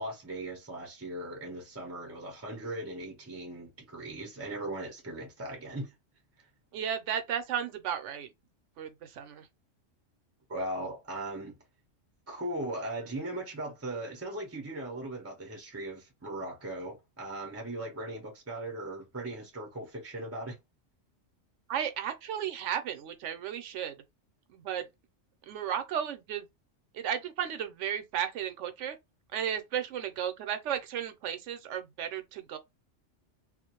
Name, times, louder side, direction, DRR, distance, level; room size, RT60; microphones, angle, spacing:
voice 1, 0.0-5.9 10.5-11.5 12.3-20.6, right 1 dB, 20° right, 0.5 m, -38 dB
voice 2, 6.7-8.3 8.8-9.5 21.7-23.9 24.5-24.9 25.5-26.5 26.9-29.0 29.3-32.6, right 9 dB, 70° right, 0.9 m, -34 dB
2.4 x 2.1 x 2.8 m
omnidirectional pair, 1.3 m